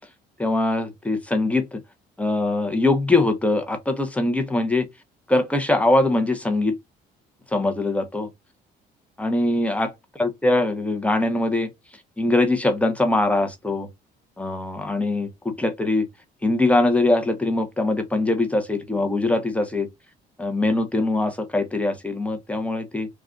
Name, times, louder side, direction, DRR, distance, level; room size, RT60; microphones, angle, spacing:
voice 1, 0.4-1.8 2.2-4.9 5.3-6.7 7.5-8.3 9.2-9.9 10.2-11.7 12.2-13.9 14.4-16.1 16.4-19.9 20.4-23.1, left 2 dB, 10° left, 0.7 m, -22 dB
3.7 x 2.4 x 2.2 m
cardioid pair, 110°, 17 cm